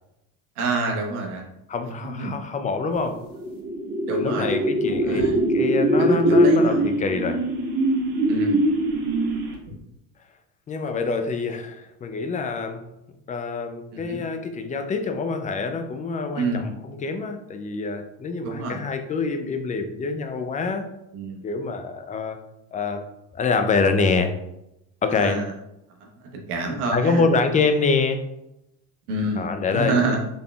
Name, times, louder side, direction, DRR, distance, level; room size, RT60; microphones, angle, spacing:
voice 1, 0.6-1.5 1.8-2.3 4.1-5.4 6.0-6.9 8.3-8.6 13.9-14.2 16.3-16.7 18.4-18.8 21.1-21.5 25.1-25.4 26.0-27.2 29.1-30.2, right 2 dB, 90° right, 1 dB, 0.9 m, -28 dB
voice 2, 1.7-3.2 4.1-7.4 10.7-12.8 13.3-20.9 21.4-22.4 22.7-23.0 23.3-24.3 25.0-25.4 26.9-28.2 29.4-30.0, left 4 dB, 20° left, 7 dB, 0.3 m, -25 dB
sound 1, 3.2-9.7, right 1 dB, 50° right, 1.4 m, -22 dB
3.7 x 3.6 x 2.3 m, 0.86 s
supercardioid pair, 85°, 44 cm